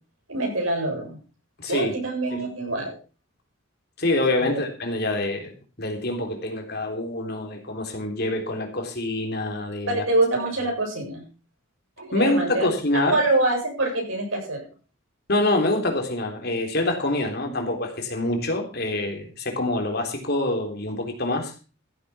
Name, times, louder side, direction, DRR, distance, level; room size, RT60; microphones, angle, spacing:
voice 1, 0.3-1.2 1.6-2.9 4.4-4.6 9.9-11.2 12.0-12.7 13.1-14.6 17.4-17.6, right 2 dB, 90° right, 0 dB, 7.7 m, -25 dB
voice 2, 1.6-1.9 2.3-2.4 4.0-10.0 12.1-13.2 15.3-21.5, left 2 dB, 50° left, 3 dB, 3.6 m, -26 dB
14.5 x 8.7 x 5.7 m, 0.35 s
head